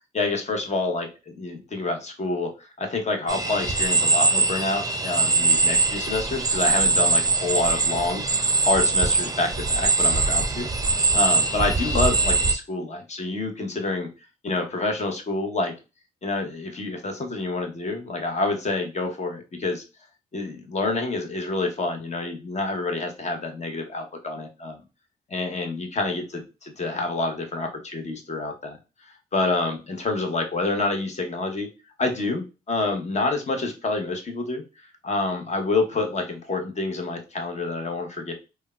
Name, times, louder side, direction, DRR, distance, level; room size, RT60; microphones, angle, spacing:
voice 1, 0.1-8.2 8.6-14.1 14.4-15.7 16.2-19.8 20.3-24.8 25.3-28.8 29.3-31.7 32.0-34.6 35.0-38.3, left 2 dB, 45° left, 4 dB, 0.9 m, -27 dB
sound 1, 3.3-12.5, right 3 dB, 20° right, 0.4 m, -22 dB
3.3 x 2.2 x 2.3 m, 0.29 s
cardioid pair, 70°, 16 cm